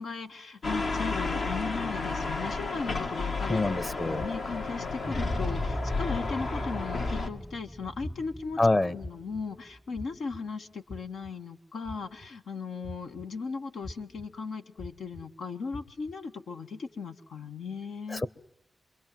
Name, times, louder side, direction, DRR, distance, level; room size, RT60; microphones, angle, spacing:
voice 1, 0.0-3.6 4.0-8.6 8.9-18.2, left 4 dB, 90° left, 6 dB, 1.7 m, -37 dB
sound 1, 0.6-7.3, left 3 dB, 70° left, 2.2 m, -32 dB
voice 2, 3.5-4.3 8.6-9.0 18.1-18.3, left 2 dB, 30° left, 19 dB, 1.2 m, -26 dB
sound 2, 4.2-4.6 5.1-5.6 6.1-6.5 7.0-7.4 8.0-8.4 9.0-9.4 9.9-10.4 10.9-11.3 11.8-12.3 12.8-13.3 13.8-14.3 14.8-15.2 15.7-16.1, left 1 dB, 50° left, 2.9 m, -42 dB
sound 3, 5.0-9.8, equal, 15° left, 1.0 m, -37 dB
27.0 x 23.0 x 7.7 m, 0.73 s
cardioid pair, 70°, 0 cm